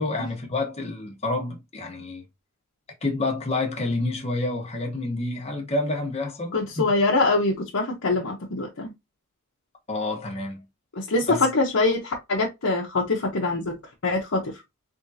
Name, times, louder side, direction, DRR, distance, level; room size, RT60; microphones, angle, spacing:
voice 1, 0.0-2.2 3.0-6.9 9.9-10.6 11.3-11.5, left 2 dB, 30° left, 1.1 m, -28 dB
voice 2, 6.5-8.9 11.0-13.8 14.0-14.5, left 3 dB, 80° left, 0.8 m, -24 dB
3.7 x 3.5 x 2.7 m
head